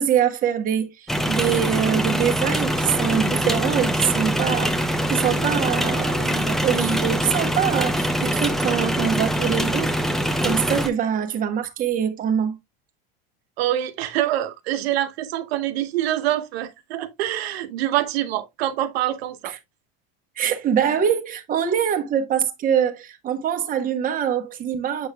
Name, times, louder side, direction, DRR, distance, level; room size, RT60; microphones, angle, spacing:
voice 1, 0.0-9.9 10.4-12.6 19.4-19.6 20.4-25.1, right 8 dB, 25° right, 1.1 m, -24 dB
sound 1, 1.1-10.9, equal, ahead, 0.5 m, -23 dB
voice 2, 13.6-19.5, right 13 dB, 90° right, 1.0 m, -25 dB
7.8 x 5.4 x 2.2 m
supercardioid pair, 140°, 31 cm